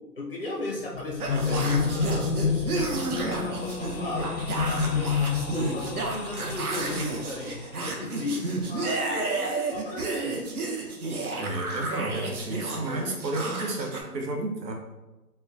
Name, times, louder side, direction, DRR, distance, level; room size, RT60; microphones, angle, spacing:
voice 1, 0.1-2.3 3.1-10.5, left 2 dB, 35° left, -3 dB, 0.5 m, -36 dB
sound 1, 0.8-7.8, left 5 dB, 85° left, 0.6 m, -29 dB
sound 2, 1.2-14.0, right 3 dB, 65° right, 0.7 m, -31 dB
voice 2, 11.3-14.7, right 2 dB, 90° right, 1 dB, 1.0 m, -32 dB
4.3 x 2.2 x 2.5 m, 1.1 s
hypercardioid pair, 165°, 49 cm